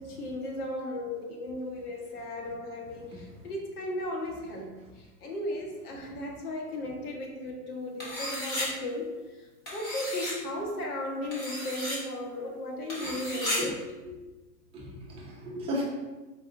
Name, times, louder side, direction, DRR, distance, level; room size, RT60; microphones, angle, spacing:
voice 1, 0.0-4.7 5.2-9.2 9.7-13.8, left 1 dB, 80° left, 0 dB, 1.3 m, -35 dB
sound 1, 8.0-8.7 9.7-10.3 11.3-12.0 12.9-13.6, left 1 dB, 20° left, 0.8 m, -34 dB
voice 2, 14.7-15.8, equal, 15° right, -5 dB, 0.6 m, -35 dB
4.6 x 3.6 x 2.6 m, 1.2 s
supercardioid pair, 150°, 45 cm